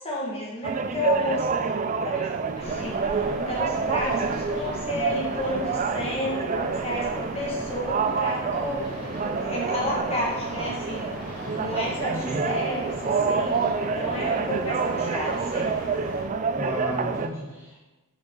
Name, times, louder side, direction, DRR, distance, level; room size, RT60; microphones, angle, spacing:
voice 1, 0.0-1.5 2.0-8.8 9.4-11.1 11.6-13.7 13.9-15.8, left 1 dB, 25° left, -4 dB, 1.7 m, -31 dB
sound 1, 0.6-17.3, right 5 dB, 35° right, 0.3 m, -28 dB
sound 2, 2.6-16.2, left 1 dB, 45° left, 2.1 m, -38 dB
voice 2, 16.5-17.8, equal, 10° right, -8 dB, 2.6 m, -33 dB
6.2 x 6.2 x 3.9 m, 1.1 s
head